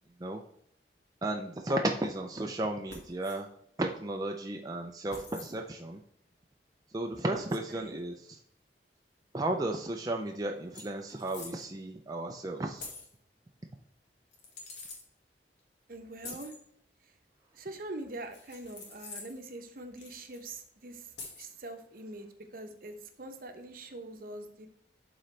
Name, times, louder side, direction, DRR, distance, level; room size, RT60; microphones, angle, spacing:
voice 1, 1.2-3.5 3.8-6.0 6.9-8.4 9.3-12.8, right 1 dB, 20° right, 2 dB, 0.4 m, -34 dB
sound 1, 2.9-3.4 5.1-5.5 7.5-7.6 9.9-10.0 10.2-10.4 10.7-11.7 12.8-13.1 14.3-15.0 16.2-16.6 18.3-19.4 20.0-20.5 21.2-21.5, left 3 dB, 85° left, 1.8 m, -46 dB
voice 2, 15.9-16.5 17.5-24.7, right 2 dB, 55° right, 6 dB, 0.8 m, -44 dB
11.5 x 3.9 x 3.3 m, 0.71 s
head